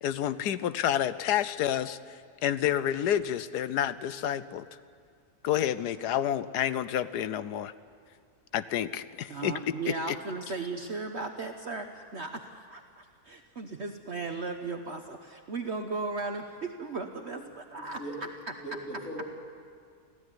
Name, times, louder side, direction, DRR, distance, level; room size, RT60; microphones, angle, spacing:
voice 1, 0.0-2.0 2.4-4.6 5.4-7.7 8.5-9.5 10.1-10.2, left 10 dB, 90° left, 14 dB, 1.3 m, -29 dB
voice 2, 9.3-18.5, right 3 dB, 45° right, 5 dB, 1.2 m, -36 dB
voice 3, 17.8-18.1 18.6-19.3, right 1 dB, 55° left, -3 dB, 5.0 m, -39 dB
24.5 x 15.5 x 9.8 m, 2.2 s
omnidirectional pair, 1.7 m